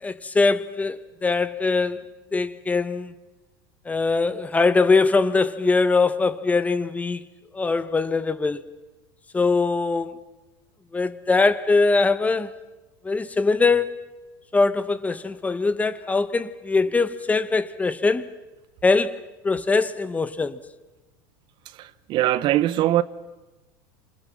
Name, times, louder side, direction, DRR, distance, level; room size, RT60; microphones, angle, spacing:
voice 1, 0.0-2.0 2.3-3.1 3.9-7.2 7.5-8.6 9.3-10.2 10.9-12.5 13.0-14.0 14.5-18.3 18.8-20.6, left 3 dB, 15° left, 1.1 m, -22 dB
voice 2, 21.6-23.0, right 14 dB, 45° right, 0.9 m, -22 dB
29.5 x 27.5 x 7.3 m
supercardioid pair, 130°, 11 cm